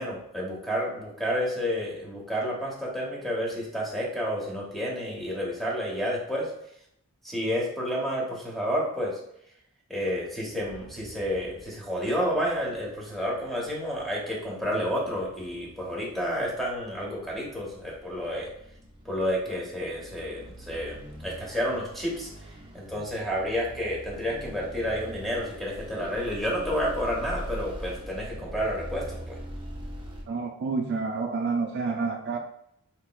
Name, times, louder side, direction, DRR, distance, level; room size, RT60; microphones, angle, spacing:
voice 1, 0.0-6.5 7.2-9.2 9.9-18.5 19.0-22.3 22.7-29.4, equal, ahead, -4 dB, 1.0 m, -30 dB
sound 1, 10.4-30.2, equal, 25° right, 0.8 m, -43 dB
voice 2, 30.3-32.4, right 4 dB, 50° right, 3 dB, 0.4 m, -29 dB
4.5 x 2.9 x 2.3 m, 0.73 s
head